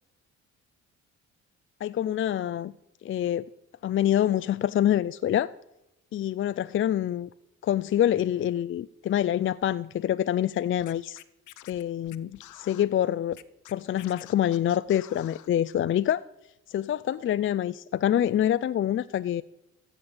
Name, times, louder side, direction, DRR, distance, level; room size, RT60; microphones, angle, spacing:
voice 1, 1.8-2.7 3.0-3.5 3.8-5.5 6.1-7.3 7.6-11.2 11.7-13.4 13.7-16.2 16.7-19.4, left 11 dB, 45° left, 0.4 m, -26 dB
Scratching (performance technique), 10.8-12.8 13.3-15.5, left 14 dB, 75° left, 0.7 m, -49 dB
15.0 x 5.1 x 8.7 m
cardioid pair, 90°, 30 cm